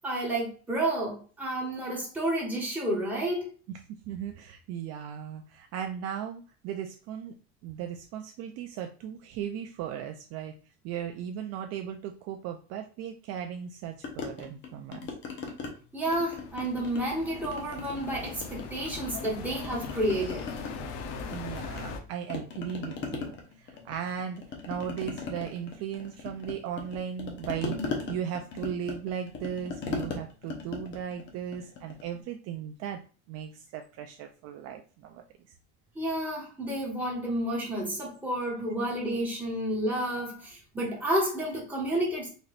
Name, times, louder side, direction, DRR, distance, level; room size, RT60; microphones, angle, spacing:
voice 1, 0.0-3.5 15.9-20.4 35.9-42.3, right 1 dB, 5° right, -4 dB, 1.5 m, -30 dB
voice 2, 3.9-7.3 7.6-10.6 10.8-15.0 21.3-33.0 33.3-35.2 40.2-40.3, right 9 dB, 50° right, 5 dB, 0.4 m, -37 dB
sound 1, 14.0-15.7 16.0-17.1 17.4-19.3 19.6-22.0 22.3-32.1, left 4 dB, 35° left, 0.8 m, -38 dB
sound 2, 16.0-22.0, left 4 dB, 80° left, 0.8 m, -40 dB
4.0 x 3.2 x 2.4 m, 0.38 s
cardioid pair, 155°, 32 cm